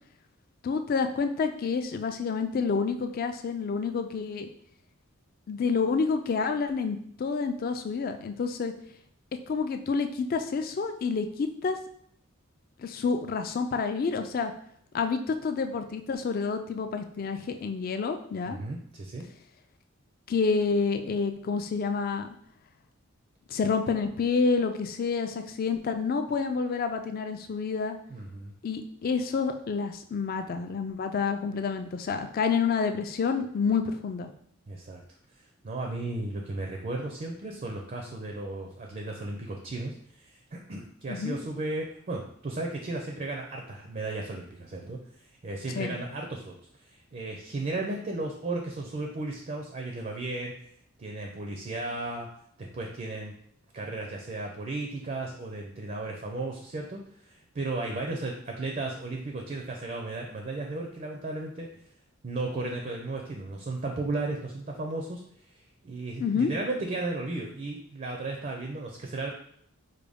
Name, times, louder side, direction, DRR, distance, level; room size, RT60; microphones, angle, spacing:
voice 1, 0.6-4.5 5.5-8.7 9.5-11.8 12.8-14.5 14.9-18.6 20.3-22.3 23.5-28.0 28.6-34.3 41.1-41.4 45.7-46.0 66.2-66.5, left 5 dB, 45° left, 7 dB, 0.3 m, -28 dB
voice 2, 18.5-19.3 28.1-28.5 34.7-35.0 35.6-45.0 45.4-46.6 46.9-50.5 51.0-52.3 52.6-53.3 53.7-61.7 62.2-65.2 65.8-69.3, right 2 dB, 40° right, 1 dB, 0.4 m, -35 dB
4.8 x 2.2 x 3.4 m, 0.66 s
head